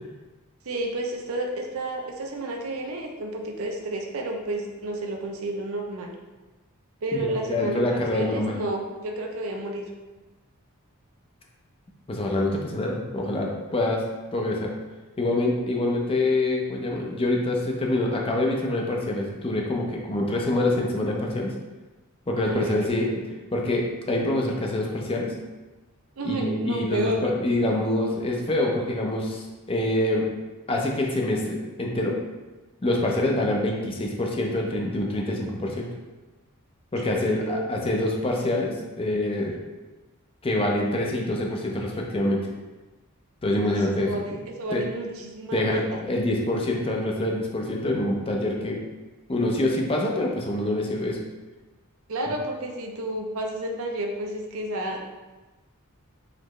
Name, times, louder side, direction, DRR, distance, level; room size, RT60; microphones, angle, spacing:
voice 1, 0.7-6.1 7.0-9.9 22.4-23.3 26.2-27.3 37.0-37.6 43.6-43.7 43.9-46.1 52.1-55.0, right 1 dB, 70° right, 2 dB, 0.6 m, -31 dB
voice 2, 7.1-8.6 12.1-14.0 14.3-14.7 15.2-21.5 22.3-23.1 23.5-25.3 26.2-30.3 30.7-32.2 32.8-35.9 36.9-39.6 40.4-42.4 43.4-44.2 44.7-44.8 45.5-48.8 49.3-51.2, left 1 dB, 25° left, 0 dB, 0.5 m, -25 dB
4.0 x 3.1 x 3.1 m, 1.2 s
head